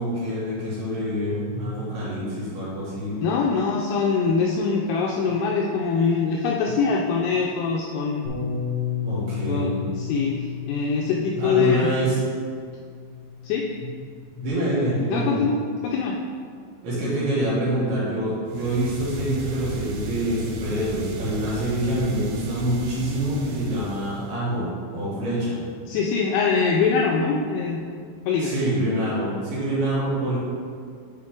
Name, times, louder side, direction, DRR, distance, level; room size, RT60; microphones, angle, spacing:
voice 1, 0.0-3.2 9.0-9.7 11.3-12.2 14.4-15.4 16.8-25.6 28.4-30.4, right 1 dB, 65° right, -8 dB, 3.5 m, -26 dB
voice 2, 3.2-8.3 9.5-11.9 13.4-13.6 15.1-16.2 25.9-27.8 28.3-28.5, left 5 dB, 90° left, -1 dB, 2.3 m, -23 dB
Bass guitar, 8.2-14.5, left 8 dB, 70° left, 1.5 m, -33 dB
sound 1, 18.5-24.4, right 2 dB, 85° right, 3.0 m, -36 dB
10.0 x 4.3 x 3.7 m, 2.2 s
omnidirectional pair, 5.2 m